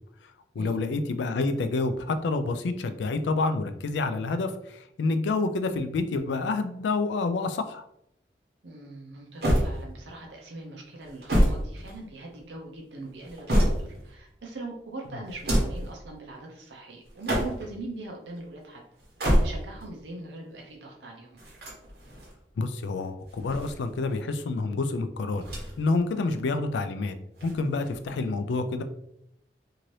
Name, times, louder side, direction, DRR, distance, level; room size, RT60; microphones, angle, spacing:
voice 1, 0.6-7.9 22.6-25.4 25.8-27.2 27.4-28.8, left 3 dB, 80° left, 9 dB, 0.3 m, -28 dB
voice 2, 8.6-18.8 19.4-21.4, right 2 dB, 80° right, 0 dB, 0.6 m, -41 dB
sound 1, 9.4-10.2 11.0-12.4 13.0-14.1 15.3-15.9 17.1-17.8 19.0-19.9 21.4-22.3 23.2-24.2 25.4-26.0 26.3-26.4 27.3-28.1, equal, 60° right, 1.1 m, -27 dB
2.8 x 2.6 x 3.1 m, 0.78 s
head